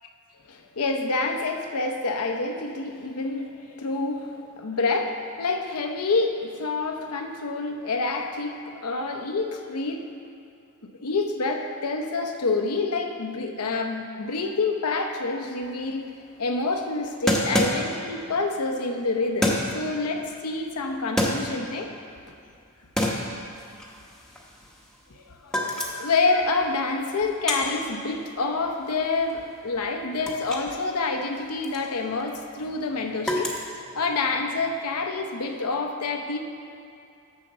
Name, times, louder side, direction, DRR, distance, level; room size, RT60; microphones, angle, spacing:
voice 1, 0.5-10.1 10.8-16.0 16.4-21.9 25.1-33.5 34.0-36.4, left 3 dB, 85° left, 4 dB, 0.8 m, -27 dB
sound 1, 15.6-15.7 15.9-16.0 17.3-18.2 19.4-19.9 20.9-21.8 22.3-22.6 23.0-25.1 25.4-26.2 26.5-30.7 31.0-34.3, left 1 dB, 5° left, 0.8 m, -28 dB
7.1 x 5.6 x 6.6 m, 2.5 s
head